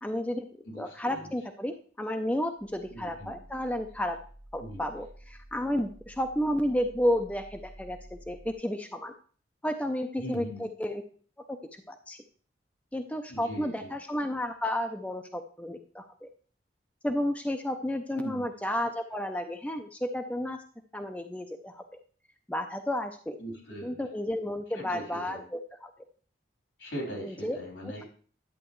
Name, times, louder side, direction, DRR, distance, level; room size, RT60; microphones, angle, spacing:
voice 1, 0.0-0.5 0.7-4.2 4.5-9.1 9.6-11.0 11.5-11.6 11.9-12.2 12.9-16.3 17.0-20.6 20.9-21.8 22.5-23.4 23.8-25.9 27.2-27.6, left 1 dB, 5° left, 4 dB, 0.5 m, -32 dB
voice 2, 0.7-1.3 2.9-3.4 4.6-4.8 10.2-10.7 13.3-13.9 18.1-18.5 23.4-24.0 24.7-25.4 26.8-28.0, right 1 dB, 75° left, 0 dB, 3.6 m, -40 dB
sound 1, 2.6-8.5, right 1 dB, 35° right, 2.4 m, -51 dB
11.0 x 7.9 x 3.1 m, 0.43 s
head